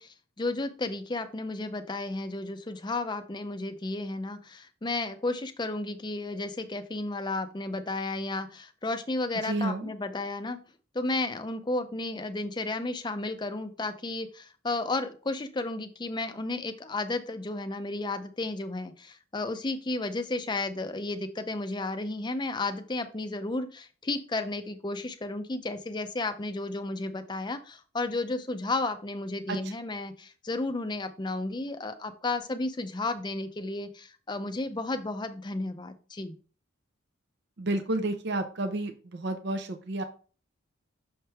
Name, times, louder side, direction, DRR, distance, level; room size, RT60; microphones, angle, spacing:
voice 1, 0.0-10.6 10.9-36.4, left 2 dB, 20° left, 9 dB, 0.5 m, -33 dB
voice 2, 9.4-9.9 29.5-29.6 37.6-40.0, right 2 dB, 55° right, 7 dB, 0.6 m, -30 dB
6.5 x 3.4 x 4.5 m, 0.39 s
head